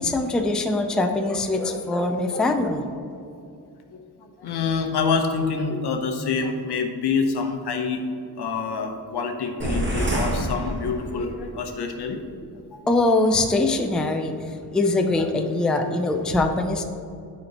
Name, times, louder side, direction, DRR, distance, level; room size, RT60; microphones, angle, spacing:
voice 1, 0.0-2.8 12.9-14.3 14.7-16.8, left 2 dB, ahead, 4 dB, 0.4 m, -22 dB
voice 2, 3.9-8.0 8.4-12.2 12.7-12.9, left 5 dB, 75° left, 5 dB, 0.9 m, -26 dB
sound 1, 9.6-11.4, right 1 dB, 30° right, 1.2 m, -27 dB
11.5 x 4.3 x 2.9 m, 2.5 s
wide cardioid pair, 125°, 40 cm